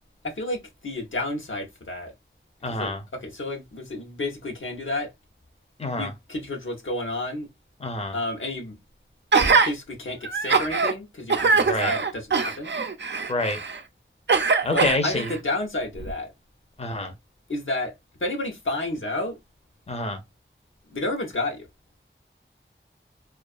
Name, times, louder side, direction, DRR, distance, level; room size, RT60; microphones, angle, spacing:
voice 1, 0.2-2.1 2.6-5.1 6.0-7.5 8.1-8.8 9.4-12.7 14.7-16.3 17.5-17.9 18.2-19.4 20.9-21.7, left 2 dB, 80° left, 0.8 m, -31 dB
voice 2, 2.6-3.0 5.8-6.1 7.8-8.2 11.6-11.9 13.3-13.6 14.6-15.3 16.8-17.1 19.9-20.2, left 2 dB, 30° left, 0.6 m, -27 dB
Gasp, 9.3-9.7 10.2-10.9 11.3-13.8 14.3-15.4 16.0-16.1, right 4 dB, 65° right, 0.5 m, -22 dB
2.4 x 2.3 x 2.4 m
wide cardioid pair, 45°, 20 cm